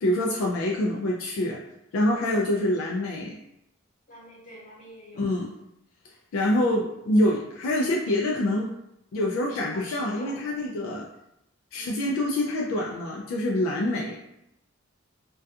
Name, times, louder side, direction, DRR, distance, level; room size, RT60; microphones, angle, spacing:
voice 1, 0.0-1.6 1.9-3.3 5.1-5.5 6.3-8.7 9.1-11.1 11.7-14.2, left 1 dB, 80° left, -1 dB, 0.3 m, -26 dB
voice 2, 2.1-2.4 4.1-5.6 9.5-10.4 11.7-11.9, equal, 40° left, -7 dB, 1.0 m, -46 dB
2.3 x 2.2 x 2.6 m, 0.82 s
head